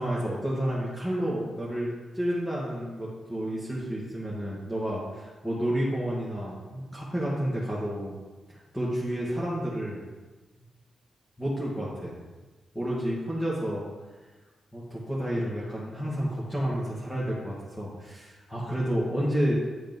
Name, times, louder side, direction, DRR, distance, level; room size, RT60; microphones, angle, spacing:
voice 1, 0.0-8.2 8.5-10.0 11.4-12.1 12.7-13.9 14.7-19.6, equal, 10° left, -7 dB, 2.0 m, -30 dB
9.4 x 5.6 x 5.4 m, 1.2 s
cardioid pair, 105°, 0 cm